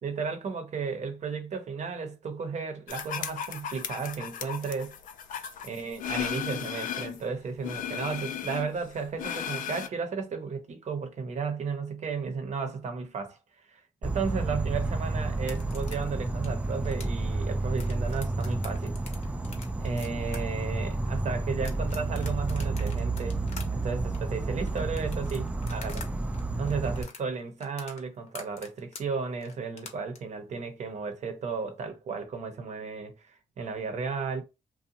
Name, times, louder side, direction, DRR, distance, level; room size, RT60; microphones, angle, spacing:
voice 1, 0.0-5.0 5.6-19.0 19.8-23.4 23.7-26.1 26.6-34.4, right 5 dB, 60° right, 0.8 m, -34 dB
sound 1, 2.9-7.2 7.6-9.9, left 9 dB, 80° left, 0.4 m, -35 dB
Insect, 14.0-27.0, right 2 dB, 10° right, 0.3 m, -31 dB
sound 2, 15.4-26.1 26.3-30.2, left 5 dB, 55° left, 0.8 m, -46 dB
2.6 x 2.2 x 2.7 m
cardioid pair, 80°, 13 cm